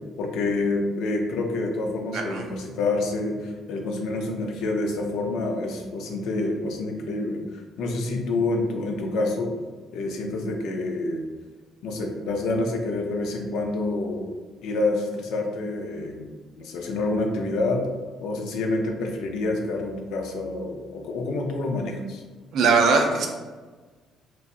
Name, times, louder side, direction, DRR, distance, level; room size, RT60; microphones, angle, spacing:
voice 1, 0.2-9.5 9.9-11.2 11.8-14.2 14.6-16.3 16.6-17.9 18.2-22.2, left 2 dB, 75° left, 2 dB, 0.5 m, -27 dB
voice 2, 2.1-2.5 22.5-23.3, right 4 dB, 60° right, 2 dB, 0.4 m, -20 dB
3.0 x 2.7 x 2.4 m, 1.4 s
cardioid pair, 160°, 0 cm